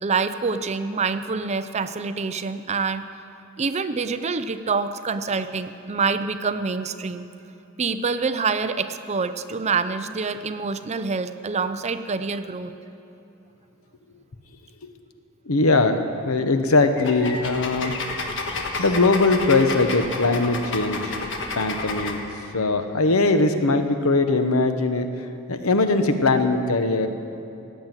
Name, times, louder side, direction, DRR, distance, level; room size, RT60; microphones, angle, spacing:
voice 1, 0.0-3.1 3.6-7.3 7.8-12.7, right 4 dB, 30° right, 11 dB, 0.5 m, -26 dB
voice 2, 15.5-16.0 16.3-17.9 18.8-21.2 21.5-22.2 22.5-25.1 25.5-27.1, left 3 dB, 80° left, 8 dB, 0.9 m, -20 dB
sound 1, 17.0-22.2, left 3 dB, 60° left, 1.4 m, -30 dB
17.0 x 7.5 x 8.9 m, 2.8 s
head